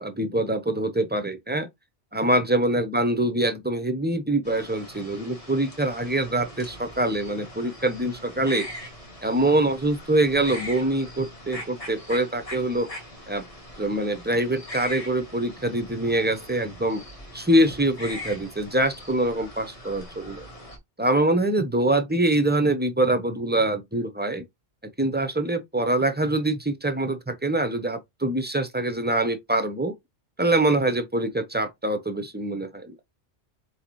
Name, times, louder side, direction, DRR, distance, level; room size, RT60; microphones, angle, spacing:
voice 1, 0.0-1.7 2.1-8.7 9.2-12.9 13.3-13.4 13.8-17.0 17.3-20.4 21.0-24.4 25.0-29.9 30.4-32.9, right 1 dB, 10° right, 0.5 m, -24 dB
sound 1, 4.4-20.8, left 1 dB, 30° left, 1.5 m, -41 dB
4.1 x 4.0 x 3.0 m
omnidirectional pair, 1.1 m